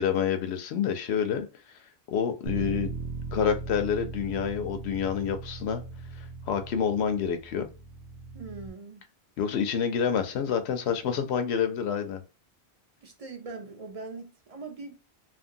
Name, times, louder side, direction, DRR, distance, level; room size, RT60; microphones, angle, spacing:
voice 1, 0.0-1.5 2.1-2.9 3.3-5.8 6.2-7.7 9.4-12.2, left 7 dB, 85° left, 0.9 m, -28 dB
Bass guitar, 2.4-8.7, right 4 dB, 80° right, 0.9 m, -39 dB
voice 2, 8.3-9.0 13.0-15.0, right 3 dB, 45° right, 0.5 m, -41 dB
2.8 x 2.5 x 2.6 m
omnidirectional pair, 1.1 m